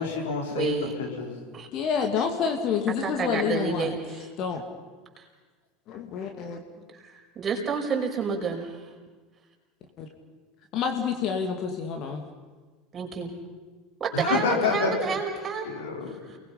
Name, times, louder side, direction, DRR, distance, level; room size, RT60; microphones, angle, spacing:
voice 1, 0.0-1.3 14.1-14.9 15.6-16.1, left 4 dB, 75° left, 0 dB, 4.6 m, -28 dB
voice 2, 0.5-0.9 1.5-1.7 3.0-4.3 5.2-5.3 6.9-8.8 12.9-13.3 14.0-15.7 16.1-16.4, right 5 dB, 30° right, 1 dB, 5.3 m, -30 dB
voice 3, 1.7-4.0 4.4-4.6 5.9-6.6 10.0-10.1 10.7-12.2, left 6 dB, 50° left, 4 dB, 2.2 m, -28 dB
29.0 x 20.0 x 5.7 m, 1.3 s
hypercardioid pair, 75°, 0 cm